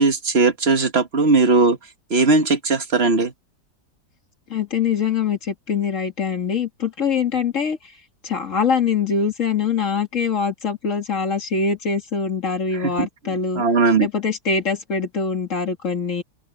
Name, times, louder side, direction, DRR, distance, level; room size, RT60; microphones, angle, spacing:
voice 1, 0.0-1.8 2.1-3.3 12.7-14.1, right 3 dB, 40° right, 1.6 m, -18 dB
voice 2, 4.5-7.8 8.2-13.6 14.0-16.2, left 6 dB, 50° left, 2.3 m, -23 dB
omnidirectional pair, 1.8 m